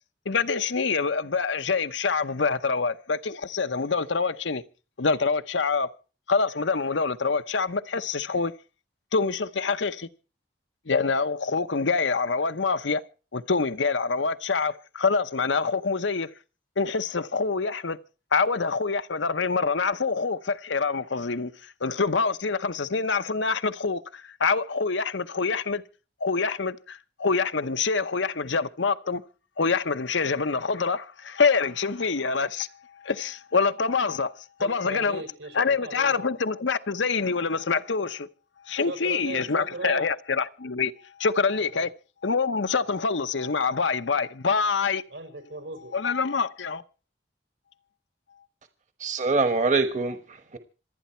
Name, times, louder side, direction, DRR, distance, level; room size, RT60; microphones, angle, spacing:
voice 1, 0.3-4.6 5.0-5.9 6.3-8.5 9.1-10.1 10.9-13.0 13.3-16.3 16.8-18.0 18.3-25.8 26.2-29.2 29.6-32.7 33.0-34.3 34.6-35.2 35.5-38.3 38.7-40.9 41.2-41.9 42.2-45.0 45.9-46.8, left 4 dB, 80° left, 0.9 m, -26 dB
voice 2, 34.6-36.3 38.8-40.1 41.7-41.8 45.1-46.0, right 2 dB, 85° right, 5.9 m, -37 dB
voice 3, 49.0-50.6, right 3 dB, 40° right, 1.2 m, -24 dB
27.0 x 9.4 x 4.4 m
head